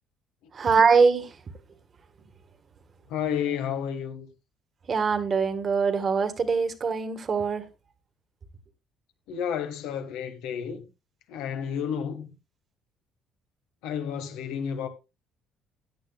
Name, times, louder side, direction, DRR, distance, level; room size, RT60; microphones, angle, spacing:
voice 1, 0.5-1.3 4.9-7.6, right 5 dB, 40° right, 1.6 m, -23 dB
voice 2, 3.1-4.3 9.3-10.8 11.3-12.3 13.8-14.9, left 8 dB, 85° left, 1.7 m, -31 dB
15.5 x 9.6 x 2.4 m
cardioid pair, 105°, 0 cm